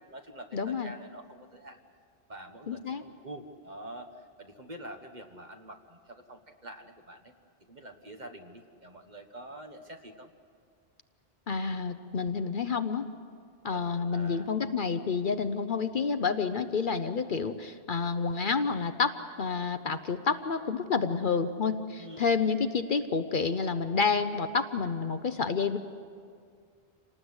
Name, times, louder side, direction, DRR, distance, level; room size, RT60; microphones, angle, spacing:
voice 1, 0.0-1.8 2.3-4.1 4.4-7.3 7.7-10.3 13.7-14.5 22.0-22.3, right 1 dB, 40° right, 5 dB, 1.5 m, -46 dB
voice 2, 0.5-0.9 2.7-3.0 11.5-13.1 13.6-19.1 19.4-25.8, left 5 dB, 50° left, 10 dB, 0.8 m, -29 dB
27.0 x 19.0 x 8.0 m, 2.3 s
omnidirectional pair, 1.1 m